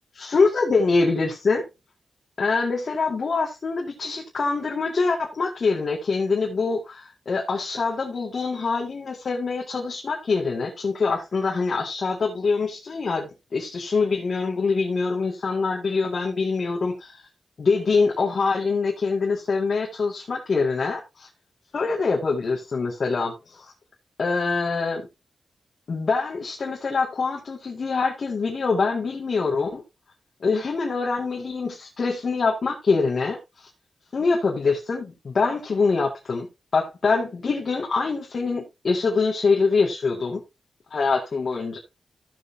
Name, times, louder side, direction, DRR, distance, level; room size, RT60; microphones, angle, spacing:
voice 1, 0.2-1.7 2.4-17.2 17.6-21.3 21.7-23.7 24.2-25.0 25.9-29.8 30.4-33.7 34.1-36.5 36.7-40.4 40.9-41.8, left 4 dB, 60° left, 2.1 m, -24 dB
14.0 x 7.2 x 2.7 m
cardioid pair, 65°, 0 cm